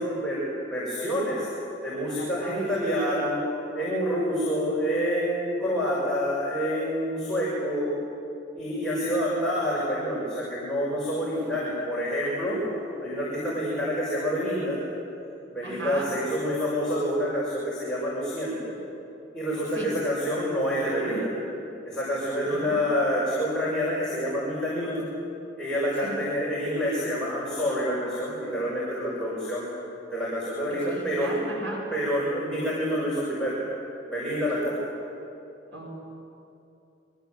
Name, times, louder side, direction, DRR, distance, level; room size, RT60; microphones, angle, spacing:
voice 1, 0.0-1.5 1.8-3.4 3.7-7.9 8.5-12.6 13.0-14.8 15.5-18.7 19.3-21.3 21.8-25.1 25.6-29.7 30.1-31.4 31.9-33.6 34.1-34.8, equal, 5° left, -8 dB, 6.3 m, -27 dB
voice 2, 2.1-2.6 15.6-16.1 19.7-19.9 22.4-22.9 26.0-26.2 30.7-31.9 35.7-35.9, right 2 dB, 90° right, -2 dB, 7.4 m, -37 dB
27.0 x 24.5 x 7.9 m, 2.8 s
head